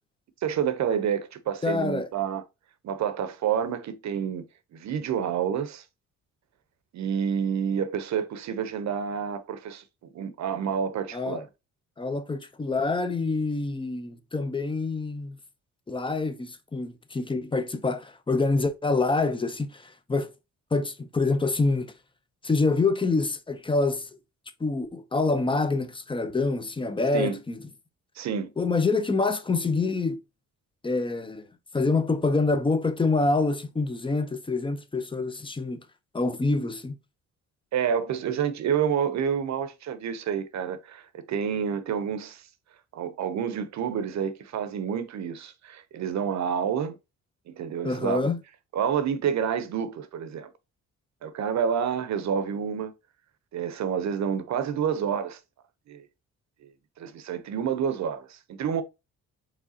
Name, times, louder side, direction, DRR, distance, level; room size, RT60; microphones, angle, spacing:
voice 1, 0.4-2.4 2.8-5.8 6.9-11.5 27.1-27.4 28.2-28.5 37.7-42.5 42.9-47.0 47.5-48.3 48.7-50.5 51.2-52.9 53.5-55.4 55.9-56.0 56.6-56.7 57.0-58.8, right 8 dB, 65° right, 0.8 m, -29 dB
voice 2, 1.6-2.1 11.1-11.4 12.0-15.4 15.9-20.3 20.7-21.9 22.4-24.1 24.6-27.6 28.6-30.2 30.8-31.5 31.7-35.8 36.1-37.0 47.8-48.4, left 3 dB, 15° left, 0.7 m, -26 dB
4.8 x 3.7 x 2.8 m
cardioid pair, 90°, 30 cm